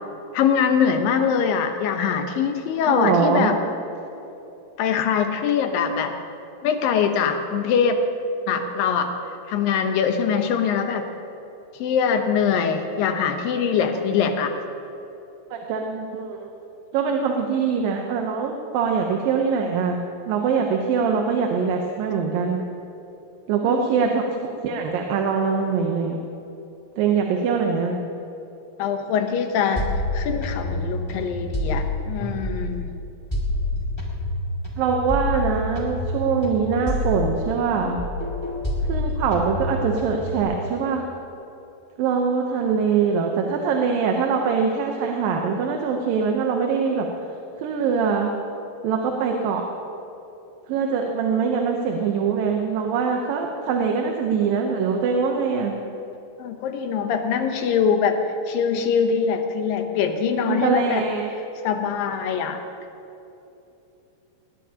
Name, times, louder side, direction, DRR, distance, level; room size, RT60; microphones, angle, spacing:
voice 1, 0.3-3.6 4.8-6.1 6.6-8.0 8.5-9.1 9.5-11.1 11.8-14.5 23.7-23.9 28.8-32.9 56.4-58.2 58.5-61.0 61.6-62.6, left 7 dB, 85° left, 6 dB, 2.7 m, -23 dB
voice 2, 2.9-3.5 15.5-16.5 16.9-22.6 23.5-26.2 27.0-28.0 34.8-38.0 38.8-41.1 42.0-47.1 47.6-48.3 48.8-49.6 50.7-55.7 60.4-61.3, right 5 dB, 85° right, 2 dB, 2.7 m, -23 dB
sound 1, 29.8-32.9 33.3-37.7 38.0-40.4, left 1 dB, 10° left, 1.5 m, -27 dB
19.5 x 19.0 x 2.9 m, 2.9 s
omnidirectional pair, 4.0 m